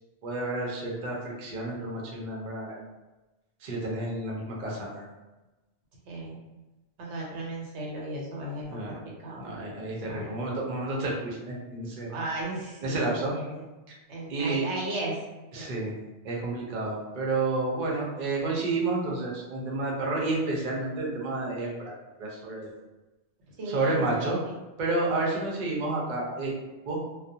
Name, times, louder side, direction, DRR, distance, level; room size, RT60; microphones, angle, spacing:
voice 1, 0.2-2.8 3.6-5.1 8.7-9.0 9.4-12.1 12.8-13.3 14.3-14.6 15.5-15.9 16.2-21.9 22.2-22.7 23.7-24.4 24.8-26.5 26.9-27.0, right 2 dB, 50° right, -3 dB, 0.7 m, -30 dB
voice 2, 6.1-6.5 7.0-9.0 9.2-9.4 10.0-10.4 12.1-13.6 14.1-15.1 15.6-15.7 23.6-24.3 25.2-25.4, right 2 dB, 85° right, -3 dB, 1.0 m, -35 dB
2.3 x 2.1 x 2.7 m, 1.1 s
omnidirectional pair, 1.1 m